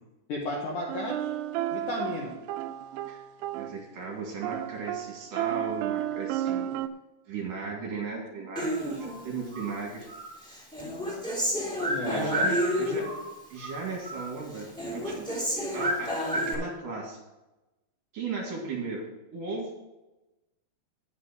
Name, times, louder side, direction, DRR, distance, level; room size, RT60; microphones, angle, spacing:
voice 1, 0.3-1.3 1.7-2.4 11.9-12.5 12.9-13.0, left 2 dB, 65° left, -2 dB, 2.1 m, -34 dB
sound 1, 0.9-3.9 4.4-6.9, right 12 dB, 85° right, 2.8 m, -32 dB
voice 2, 3.6-6.7 7.3-10.1 12.0-13.0 13.5-15.3 15.7-17.2 18.1-19.1 19.3-19.7, right 4 dB, 55° right, -2 dB, 3.2 m, -36 dB
Human voice, 8.5-9.7 10.1-13.3 13.6-14.3 14.5-16.5, equal, ahead, 2.0 m, -30 dB
10.5 x 8.4 x 5.0 m, 1.0 s
omnidirectional pair, 5.4 m